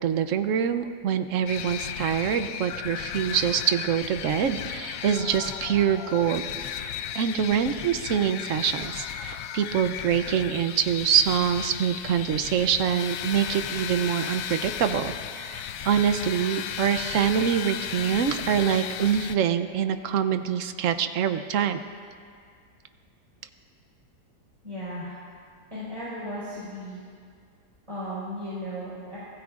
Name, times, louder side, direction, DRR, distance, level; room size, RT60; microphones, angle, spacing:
voice 1, 0.0-21.8, right 8 dB, 60° right, 10 dB, 0.9 m, -25 dB
sound 1, 1.5-19.4, left 10 dB, 70° left, 0.9 m, -35 dB
voice 2, 24.6-25.1 25.7-27.0 27.9-29.2, equal, 20° right, -10 dB, 4.6 m, -35 dB
25.0 x 17.5 x 2.5 m, 2.1 s
omnidirectional pair, 1.7 m